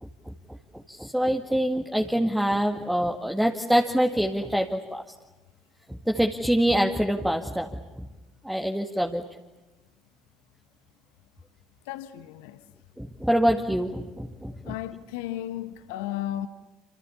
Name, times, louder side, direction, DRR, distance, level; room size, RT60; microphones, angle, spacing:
voice 1, 0.0-5.0 5.9-8.1 8.4-9.2 13.0-14.8, equal, 5° right, 2.1 m, -25 dB
voice 2, 11.9-12.6 14.6-16.5, left 13 dB, 70° left, 1.5 m, -34 dB
28.0 x 28.0 x 7.2 m
figure-of-eight pair, 60°, 0 cm